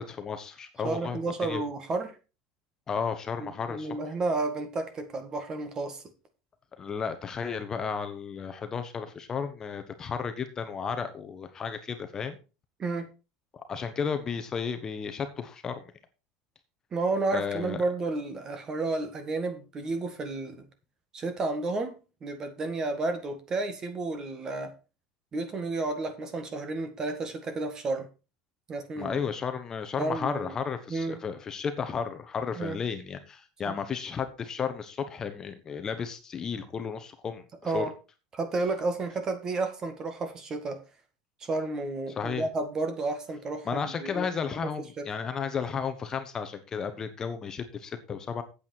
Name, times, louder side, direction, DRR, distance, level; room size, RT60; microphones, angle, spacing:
voice 1, 0.0-1.6 2.9-3.9 6.8-12.4 13.5-15.9 17.3-17.8 29.0-37.8 42.2-42.5 43.6-48.4, left 6 dB, 25° left, 8 dB, 1.2 m, -33 dB
voice 2, 0.8-2.2 3.4-6.0 12.8-13.1 16.9-20.7 21.1-24.7 25.3-28.1 28.7-29.2 30.0-30.5 30.9-31.2 32.6-32.8 33.7-33.8 37.6-37.9 38.3-40.8 41.4-44.3 44.6-44.7 45.0-45.1, right 3 dB, 25° right, 9 dB, 1.8 m, -31 dB
8.6 x 8.3 x 4.5 m, 0.31 s
supercardioid pair, 140°, 2 cm